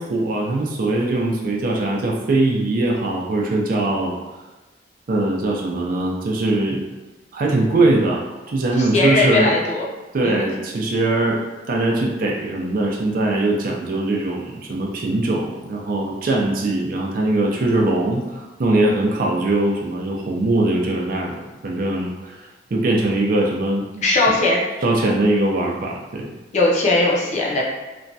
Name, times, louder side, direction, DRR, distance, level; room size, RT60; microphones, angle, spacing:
voice 1, 0.0-4.2 5.1-6.9 7.3-9.6 10.1-11.4 11.7-24.0 24.8-26.3, right 2 dB, 50° right, -1 dB, 0.4 m, -21 dB
voice 2, 8.9-9.9 10.2-10.4 24.0-24.6 26.5-27.6, left 2 dB, 40° left, -3 dB, 0.5 m, -18 dB
2.9 x 2.2 x 2.6 m, 1.2 s
head